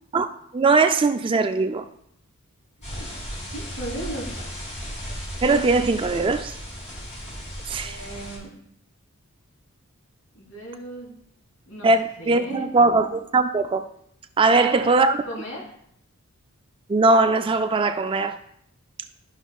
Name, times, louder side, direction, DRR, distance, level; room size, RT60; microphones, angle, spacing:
voice 1, 0.1-1.9 5.4-6.5 7.7-8.0 11.8-13.9 14.4-15.2 16.9-18.4, right 3 dB, 25° right, 0.3 m, -20 dB
sound 1, 2.8-8.4, equal, 30° left, 2.5 m, -35 dB
voice 2, 3.5-4.4 7.8-8.5 10.3-11.2 11.7-11.9 12.2-12.7 14.4-15.0 15.3-15.6, right 1 dB, 85° left, 3.1 m, -36 dB
12.0 x 5.9 x 2.3 m
head